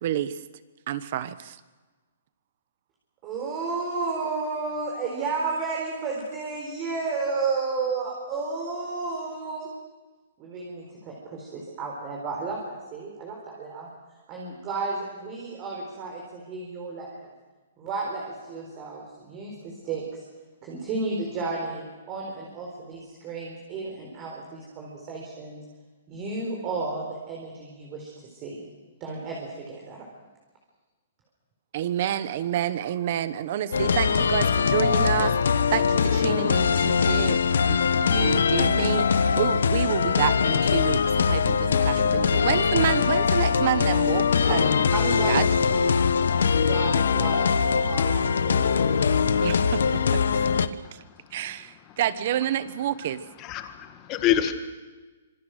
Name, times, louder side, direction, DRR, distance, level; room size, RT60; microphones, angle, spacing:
voice 1, 0.0-0.4 0.9-1.6 31.7-37.4 37.7-44.8 45.3-45.4 49.4-50.2 50.9-51.0 51.3-53.2, right 11 dB, 40° right, 14 dB, 1.1 m, -29 dB
voice 2, 3.2-9.7 10.4-13.9 14.3-17.3 17.8-20.2 20.6-25.6 26.1-28.7 29.0-30.1 44.9-46.1 46.3-49.1, right 4 dB, 20° right, -1 dB, 4.3 m, -32 dB
sound 1, 33.7-50.7, left 6 dB, 80° left, 1.2 m, -22 dB
voice 3, 53.4-54.5, left 11 dB, 20° left, 8 dB, 1.7 m, -26 dB
26.0 x 26.0 x 6.6 m, 1.3 s
hypercardioid pair, 175°, 0 cm